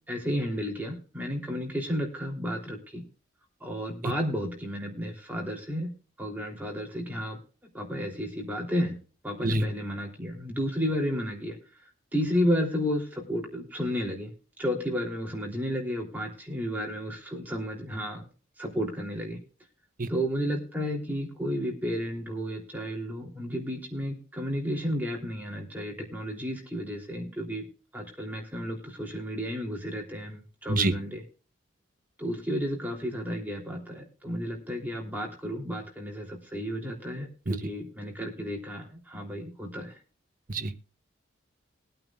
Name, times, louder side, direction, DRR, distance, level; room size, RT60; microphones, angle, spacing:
voice 1, 0.1-3.0 3.6-5.9 6.2-7.4 7.7-9.0 9.2-11.6 12.1-14.3 14.6-18.2 18.6-19.4 20.1-27.6 27.9-31.2 32.2-39.9, equal, 10° right, 0 dB, 3.2 m, -32 dB
voice 2, 40.5-40.8, right 2 dB, 45° right, 10 dB, 0.9 m, -26 dB
22.5 x 9.0 x 2.4 m, 0.36 s
head